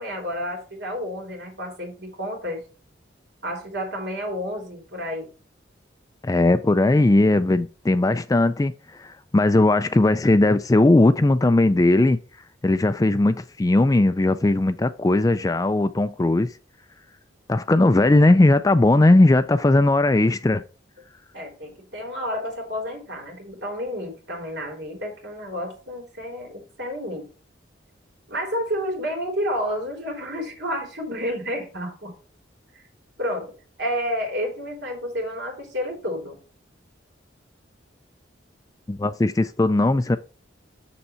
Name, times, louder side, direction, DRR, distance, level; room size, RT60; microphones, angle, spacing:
voice 1, 0.0-2.6 3.4-5.3 21.3-27.2 28.3-32.1 33.2-33.5 33.8-36.4, equal, 60° right, 3.6 m, -30 dB
voice 2, 6.2-8.7 9.0-12.2 12.6-16.5 17.5-20.6 38.9-40.2, left 2 dB, 20° left, 0.3 m, -18 dB
7.0 x 6.6 x 4.4 m
head